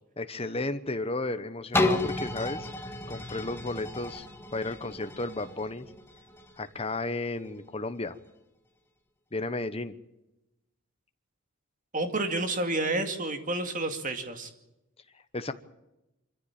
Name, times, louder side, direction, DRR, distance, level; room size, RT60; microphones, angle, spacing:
voice 1, 0.2-2.7 3.1-4.3 4.5-5.9 6.6-8.2 9.3-9.9 15.3-15.5, left 2 dB, 25° left, 10 dB, 1.1 m, -33 dB
sound 1, 1.7-7.5 8.0-8.1, left 2 dB, 10° left, 1.8 m, -32 dB
voice 2, 11.9-14.5, right 2 dB, 35° right, 6 dB, 2.3 m, -30 dB
25.0 x 14.5 x 8.9 m, 0.94 s
head